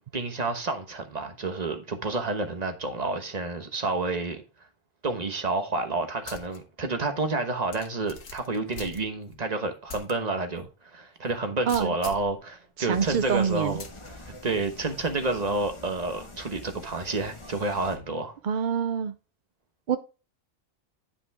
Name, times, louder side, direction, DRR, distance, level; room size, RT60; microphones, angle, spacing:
voice 1, 0.1-4.4 5.0-13.9 14.2-18.4, right 3 dB, 30° right, 1.2 m, -29 dB
sound 1, 6.2-6.6 7.0-7.1 7.7-9.4 9.9-10.1 10.6-10.7 11.7-12.4 13.8-14.1, left 5 dB, 70° left, 1.6 m, -42 dB
voice 2, 12.8-13.8 18.4-19.1 19.9-20.0, right 7 dB, 60° right, 0.5 m, -26 dB
sound 2, 12.9-18.0, left 2 dB, 25° left, 1.2 m, -45 dB
10.0 x 5.3 x 3.5 m
omnidirectional pair, 1.4 m